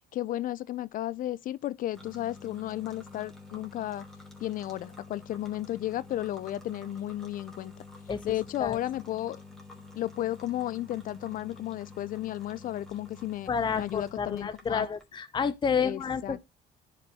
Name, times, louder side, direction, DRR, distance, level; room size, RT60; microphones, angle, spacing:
voice 1, 0.1-4.1 4.4-7.7 8.2-9.4 10.0-13.5 13.8-14.9 15.8-16.4, left 13 dB, 55° left, 0.4 m, -33 dB
sound 1, 1.9-15.0, left 3 dB, 5° left, 3.1 m, -49 dB
voice 2, 13.5-16.4, left 6 dB, 25° left, 0.7 m, -30 dB
10.5 x 5.3 x 3.6 m
cardioid pair, 110°, 17 cm